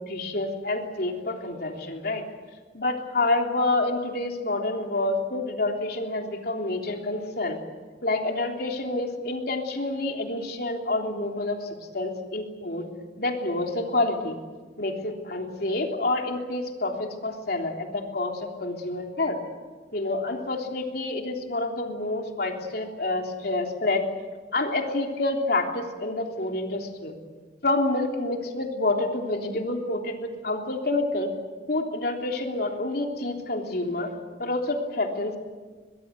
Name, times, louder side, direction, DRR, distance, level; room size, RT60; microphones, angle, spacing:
voice 1, 0.1-2.2 2.7-7.6 8.0-11.6 11.9-12.8 13.2-14.4 14.8-19.4 19.9-24.0 24.5-27.1 27.6-31.3 31.7-34.1 34.4-35.4, left 2 dB, 55° left, 2 dB, 3.4 m, -28 dB
23.0 x 21.0 x 8.1 m, 1.4 s
head